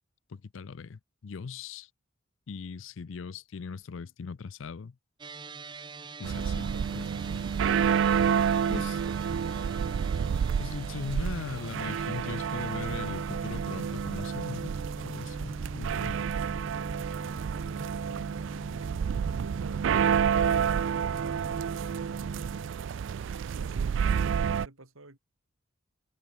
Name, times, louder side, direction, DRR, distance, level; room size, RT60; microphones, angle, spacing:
voice 1, 0.3-1.9 2.5-5.0 6.2-7.1 7.3-7.5 8.7-9.0 10.6-14.7 15.0-16.2, left 5 dB, 65° left, 0.5 m, -39 dB
sound 1, 5.2-22.7, right 2 dB, 20° right, 0.7 m, -42 dB
sound 2, 6.2-24.7, right 7 dB, 60° right, 0.3 m, -29 dB
voice 2, 6.2-6.9 16.2-19.0 19.3-22.7 23.5-25.2, right 2 dB, 80° right, 3.2 m, -52 dB
head